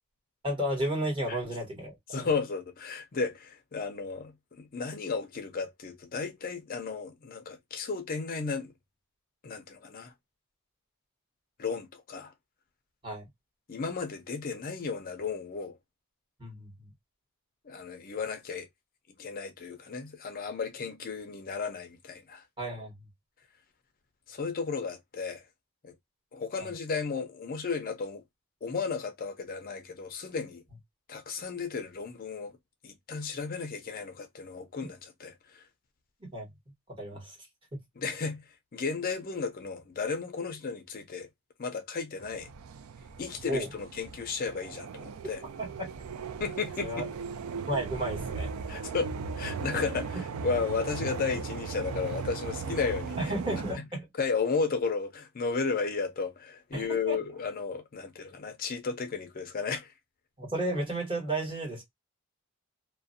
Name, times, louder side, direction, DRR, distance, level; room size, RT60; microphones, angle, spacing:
voice 1, 0.4-2.3 13.0-13.3 16.4-16.9 22.6-22.9 26.6-26.7 36.2-36.5 36.9-37.4 43.5-43.7 45.6-45.9 46.8-47.1 47.7-48.5 53.2-54.1 56.7-57.2 60.4-61.8, right 1 dB, 25° right, 1.2 m, -33 dB
voice 2, 2.1-8.7 9.4-10.1 11.6-12.3 13.7-15.8 17.6-18.7 19.2-22.4 24.3-25.5 25.8-25.9 26.3-28.2 28.6-30.6 31.1-32.6 32.8-35.6 38.0-38.4 38.7-41.3 41.6-42.5 43.2-45.4 46.4-47.1 48.7-53.2 53.8-53.9 54.1-59.9, left 5 dB, 40° left, 0.4 m, -34 dB
sound 1, 42.2-53.7, right 5 dB, 70° right, 0.3 m, -38 dB
2.4 x 2.1 x 2.4 m
head